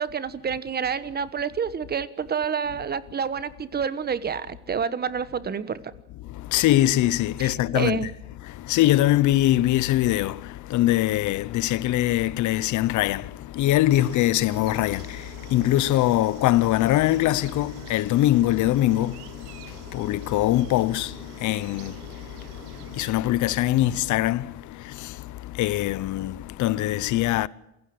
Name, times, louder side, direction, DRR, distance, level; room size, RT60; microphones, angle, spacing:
voice 1, 0.0-5.9 7.4-8.1, right 6 dB, 20° right, 1.3 m, -28 dB
voice 2, 6.2-8.1 8.4-27.5, left 15 dB, 40° left, 0.9 m, -23 dB
sound 1, 13.9-23.1, right 11 dB, 85° right, 2.6 m, -46 dB
28.0 x 16.0 x 7.9 m
supercardioid pair, 135°, 45 cm